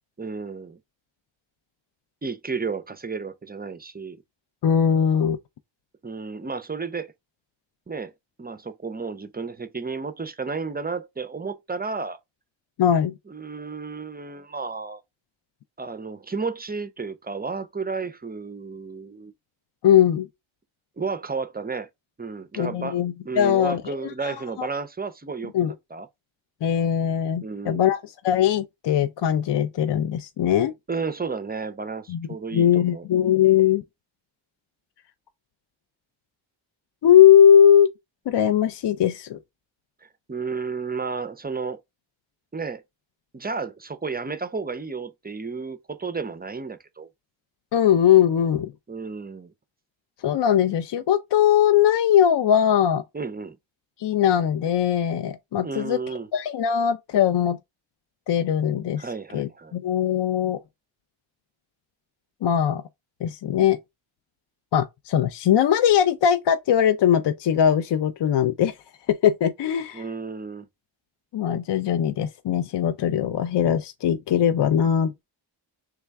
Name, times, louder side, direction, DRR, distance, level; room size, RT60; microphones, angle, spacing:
voice 1, 0.2-0.8 2.2-4.2 6.0-7.1 7.9-8.1 8.4-12.2 13.3-15.0 15.8-19.3 21.0-21.9 22.2-26.1 27.4-27.9 30.9-33.1 40.0-41.8 42.5-42.8 43.3-47.1 48.9-49.5 53.1-53.6 55.6-56.3 59.0-59.8 69.9-70.7, right 4 dB, 20° right, 0.4 m, -32 dB
voice 2, 4.6-5.4 12.8-13.1 19.8-20.3 22.6-24.0 24.2-24.7 25.5-25.7 26.6-30.7 32.1-32.3 32.5-33.8 37.0-37.9 38.3-39.4 47.7-48.7 50.2-53.0 54.0-56.0 56.3-57.6 58.3-59.0 59.3-60.6 62.4-62.8 63.2-63.8 64.7-68.7 69.1-70.0 71.3-75.2, left 9 dB, 60° left, 0.5 m, -20 dB
3.4 x 2.2 x 3.3 m
cardioid pair, 50°, 48 cm